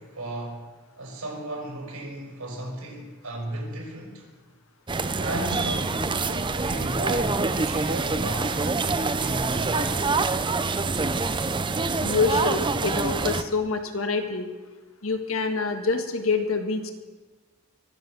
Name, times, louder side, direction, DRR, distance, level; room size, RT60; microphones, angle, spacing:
voice 1, 0.0-4.3 5.2-8.7 9.2-10.2, right 1 dB, 75° right, 5.3 m, -34 dB
sound 1, 4.9-13.4, right 3 dB, 20° right, 0.6 m, -26 dB
voice 2, 12.0-14.5 15.0-16.9, left 4 dB, 70° left, 1.7 m, -26 dB
24.0 x 8.1 x 6.3 m
head